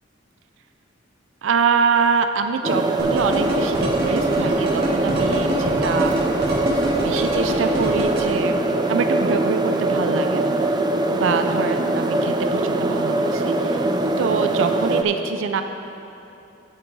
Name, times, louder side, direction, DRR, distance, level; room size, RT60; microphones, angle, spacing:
voice 1, 1.4-6.3 7.0-8.6 8.9-10.4 11.1-13.9 14.2-15.6, right 5 dB, 85° right, 7 dB, 0.4 m, -24 dB
sound 1, 2.6-15.0, right 2 dB, 20° right, 0.4 m, -22 dB
sound 2, 3.0-8.2, right 2 dB, 55° right, 2.1 m, -26 dB
8.5 x 8.5 x 4.0 m, 2.9 s
head